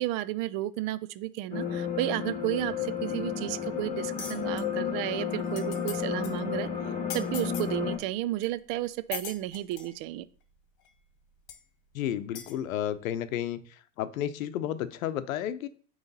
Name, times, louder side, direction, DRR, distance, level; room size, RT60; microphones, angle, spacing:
voice 1, 0.0-6.7 7.1-10.2, right 15 dB, 55° right, 16 dB, 0.5 m, -32 dB
sound 1, 1.5-8.0, left 7 dB, 15° left, 2.0 m, -32 dB
sound 2, 4.2-4.6 5.2-5.3 5.4-6.0 6.2-6.4 7.1-7.7 8.4-8.5 9.1-9.9 10.8-10.9 11.5-11.6 12.3-12.5, left 9 dB, 50° left, 1.3 m, -40 dB
voice 2, 11.9-13.6 14.0-15.7, left 11 dB, 85° left, 13 dB, 0.7 m, -32 dB
8.8 x 3.2 x 4.1 m, 0.43 s
hypercardioid pair, 100°, 40 cm